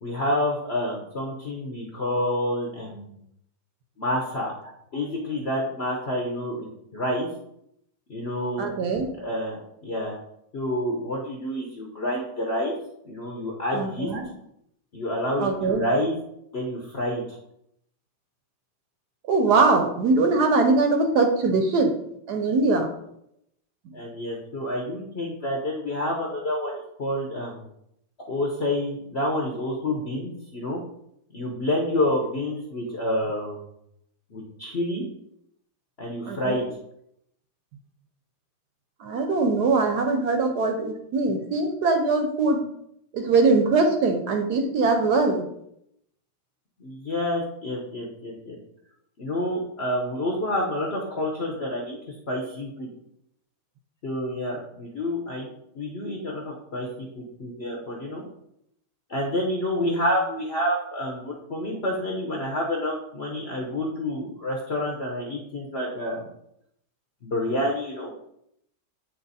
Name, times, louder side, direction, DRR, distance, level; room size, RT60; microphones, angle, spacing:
voice 1, 0.0-3.2 4.0-4.5 4.9-6.7 6.9-7.3 8.1-8.7 9.2-10.2 10.5-12.7 13.0-14.1 14.9-16.2 16.5-17.4 23.9-27.6 28.3-30.8 31.3-33.6 34.3-35.0 36.0-36.6 46.8-48.6 49.2-52.9 54.0-55.5 55.7-58.2 59.1-66.3 67.2-68.1, left 1 dB, 50° left, -1 dB, 0.8 m, -28 dB
voice 2, 8.6-9.1 13.7-14.2 15.4-15.8 19.3-21.9 22.3-22.9 36.3-36.6 39.0-42.6 43.1-45.4, right 3 dB, 65° right, 5 dB, 1.1 m, -22 dB
8.6 x 3.1 x 4.0 m, 0.76 s
omnidirectional pair, 2.2 m